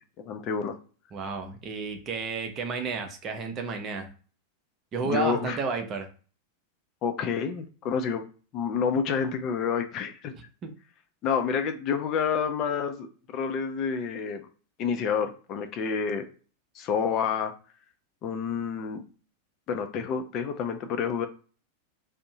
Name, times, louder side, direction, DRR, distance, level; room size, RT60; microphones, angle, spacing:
voice 1, 0.2-0.7 5.0-5.6 7.0-8.2 8.5-10.3 11.2-13.1 13.3-14.4 14.8-16.2 16.8-17.5 18.2-19.0 19.7-21.3, left 6 dB, 35° left, 0.4 m, -28 dB
voice 2, 1.1-4.1 4.9-6.1 10.3-10.8, right 4 dB, 30° right, 0.6 m, -32 dB
2.6 x 2.0 x 2.7 m
figure-of-eight pair, 90°, 0 cm